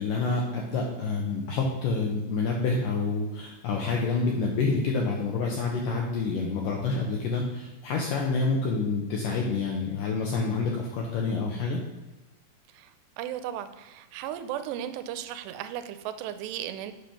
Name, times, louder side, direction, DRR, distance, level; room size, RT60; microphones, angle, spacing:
voice 1, 0.0-11.8, left 4 dB, 75° left, 0 dB, 2.0 m, -28 dB
voice 2, 13.2-16.9, right 11 dB, 85° right, 11 dB, 2.7 m, -35 dB
8.0 x 5.2 x 5.8 m, 1.1 s
omnidirectional pair, 4.8 m